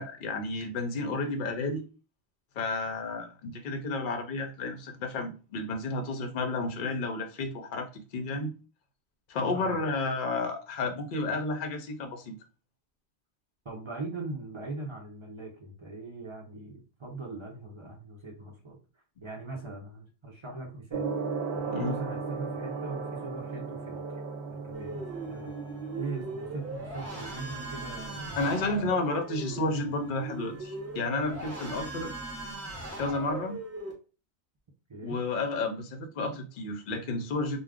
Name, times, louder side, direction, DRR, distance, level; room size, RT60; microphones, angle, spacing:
voice 1, 0.0-1.8 2.6-8.5 9.3-12.3 21.7-22.0 28.4-32.1 33.0-33.6 35.0-37.6, left 3 dB, 60° left, 0.7 m, -31 dB
voice 2, 13.6-18.8 19.2-21.1 21.6-24.0 24.5-25.5 25.9-28.9 34.9-35.2, right 3 dB, 35° right, 0.5 m, -40 dB
Gong, 20.9-32.9, right 4 dB, 75° right, 0.8 m, -39 dB
sound 1, 24.7-33.9, right 2 dB, 15° right, 0.8 m, -39 dB
2.3 x 2.1 x 3.4 m
omnidirectional pair, 1.1 m